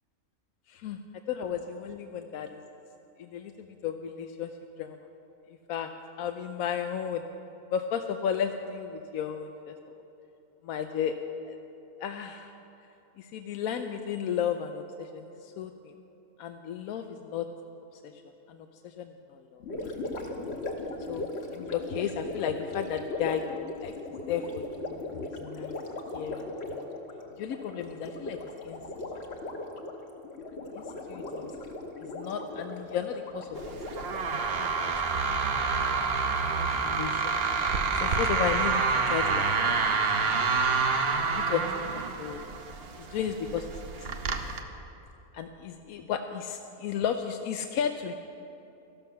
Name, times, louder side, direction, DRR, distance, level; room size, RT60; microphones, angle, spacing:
voice 1, 0.7-1.0 1.3-2.6 3.2-4.5 4.8-5.1 5.5-5.9 6.2-7.2 7.7-9.7 10.6-11.1 11.4-11.6 12.0-12.5 13.2-15.9 16.4-17.5 18.0-18.2 18.5-19.6 21.1-21.3 21.5-23.4 23.8-23.9 24.3-25.7 26.1-26.9 27.4-28.4 28.6-28.8 30.7-30.8 31.1-31.5 32.0-33.8 34.1-34.2 34.4-36.0 36.6-40.6 41.3-42.4 43.0-44.1 45.3-48.1, left 8 dB, 80° left, 6 dB, 1.0 m, -34 dB
Gurgling, 19.6-34.9, left 2 dB, 50° left, 1.3 m, -38 dB
sound 1, 33.6-44.6, right 4 dB, 50° right, 1.0 m, -28 dB
13.5 x 12.5 x 5.7 m, 2.9 s
omnidirectional pair, 1.5 m